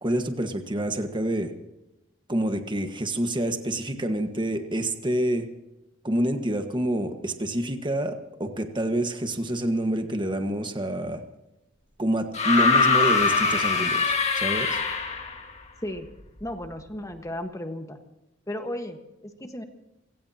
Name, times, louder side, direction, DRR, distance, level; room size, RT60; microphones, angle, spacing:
voice 1, 0.0-1.5 2.3-5.5 6.0-11.2 12.0-14.8, right 1 dB, 25° right, 6 dB, 1.5 m, -27 dB
sound 1, 12.3-15.4 16.6-16.7, left 4 dB, 35° left, 1.8 m, -22 dB
voice 2, 16.4-18.0 18.5-19.6, left 1 dB, 20° left, 5 dB, 1.4 m, -34 dB
29.5 x 17.0 x 2.9 m, 0.94 s
head